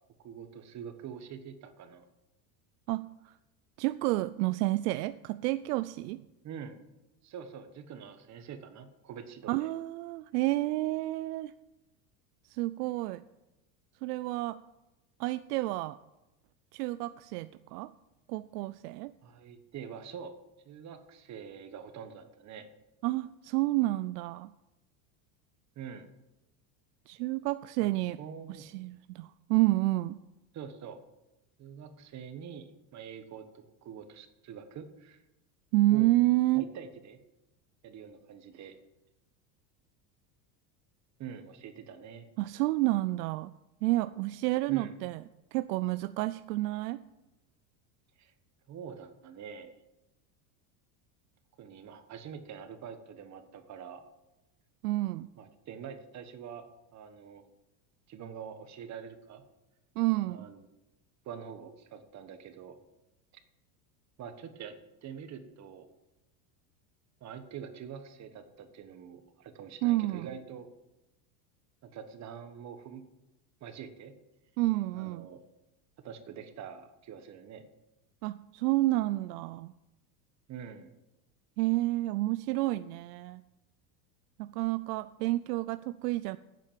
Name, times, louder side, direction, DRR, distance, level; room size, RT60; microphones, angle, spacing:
voice 1, 0.2-2.0 6.4-6.8 7.2-9.7 19.2-20.3 20.6-22.7 25.7-26.1 27.8-27.9 28.2-28.6 30.5-31.0 31.6-35.2 35.9-36.1 36.5-37.2 37.8-38.8 41.2-42.3 44.7-44.9 48.2-48.3 48.7-49.7 51.6-54.1 55.4-57.5 58.1-59.4 60.3-60.6 61.2-62.8 64.2-65.9 67.2-70.7 71.8-73.0 73.6-74.1 74.9-75.4 76.0-77.6 80.5-80.9, right 7 dB, 35° right, 9 dB, 1.3 m, -45 dB
voice 2, 3.8-6.2 9.5-11.5 12.5-13.2 14.0-14.6 15.2-16.0 16.7-17.9 18.3-19.1 23.0-24.5 27.1-28.2 28.5-30.2 35.7-36.6 42.4-43.5 43.8-45.2 45.5-47.0 54.8-55.3 60.0-60.5 69.8-70.3 74.6-75.3 78.2-79.7 81.6-83.4 84.4-86.4, right 18 dB, 85° right, 14 dB, 0.5 m, -29 dB
9.1 x 7.8 x 9.1 m, 0.98 s
supercardioid pair, 135°, 46 cm